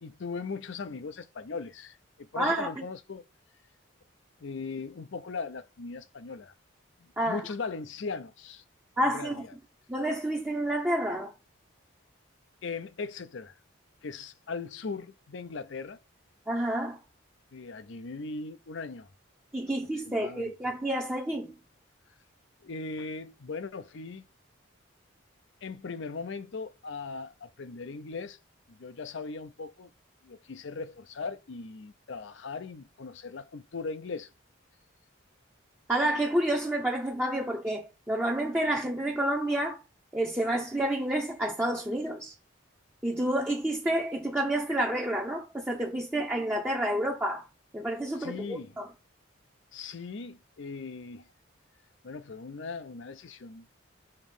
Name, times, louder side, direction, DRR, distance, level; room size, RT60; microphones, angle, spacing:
voice 1, 0.0-3.2 4.4-6.5 7.0-8.6 9.0-9.5 12.6-13.5 14.0-16.0 17.5-19.1 20.1-20.5 22.6-24.2 25.6-28.4 28.8-29.9 30.2-34.3 48.2-48.7 49.7-51.3 52.0-53.7, left 4 dB, 65° left, 0.5 m, -39 dB
voice 2, 2.4-2.7 7.2-7.4 9.0-9.5 9.9-11.3 16.5-17.0 19.5-21.5 35.9-39.8 40.1-42.3 43.0-47.5 47.7-48.9, right 1 dB, 10° right, 0.7 m, -29 dB
6.7 x 3.0 x 5.3 m
head